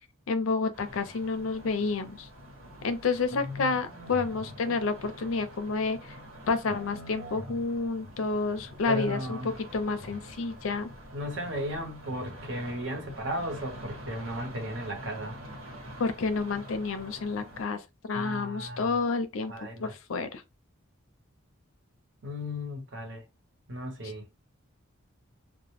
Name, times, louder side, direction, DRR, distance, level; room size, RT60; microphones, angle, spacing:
voice 1, 0.3-2.3 2.8-6.0 6.5-10.9 16.0-20.4, left 4 dB, 70° left, 0.4 m, -30 dB
sound 1, 0.7-17.6, equal, 80° right, 1.2 m, -45 dB
voice 2, 3.4-3.7 8.9-9.5 11.1-15.4 18.1-18.9 19.5-19.9 22.2-23.2 23.7-24.4, equal, 55° right, 0.8 m, -35 dB
2.1 x 2.0 x 3.0 m
head